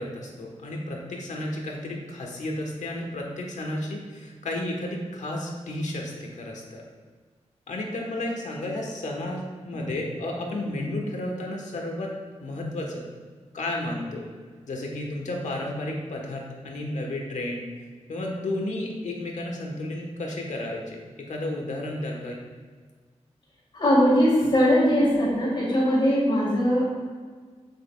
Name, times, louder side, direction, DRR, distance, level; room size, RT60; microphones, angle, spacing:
voice 1, 0.0-6.8 7.7-12.1 12.4-13.0 13.5-14.2 14.7-17.7 18.1-21.0 21.3-22.4, left 1 dB, 85° left, 0 dB, 1.3 m, -32 dB
voice 2, 23.7-26.8, equal, 45° left, -9 dB, 2.0 m, -20 dB
7.9 x 7.6 x 2.4 m, 1.5 s
wide cardioid pair, 170°, 12 cm